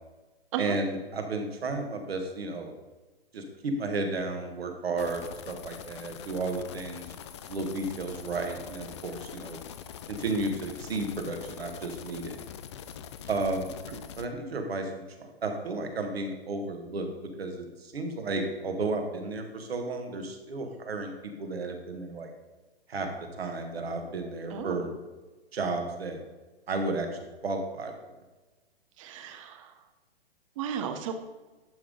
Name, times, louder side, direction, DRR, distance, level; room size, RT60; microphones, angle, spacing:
voice 1, 0.6-2.7 3.3-7.1 7.5-9.6 10.1-12.3 13.3-13.7 14.2-17.1 17.4-21.1 21.4-22.3 22.9-24.9 25.5-26.2 26.7-27.9, right 3 dB, 70° right, 5 dB, 1.6 m, -33 dB
sound 1, 5.0-14.3, left 8 dB, 30° left, 0.4 m, -44 dB
voice 2, 29.0-29.7 30.6-31.1, right 8 dB, 30° right, 7 dB, 0.7 m, -34 dB
11.0 x 3.7 x 5.2 m, 1.2 s
figure-of-eight pair, 125°, 31 cm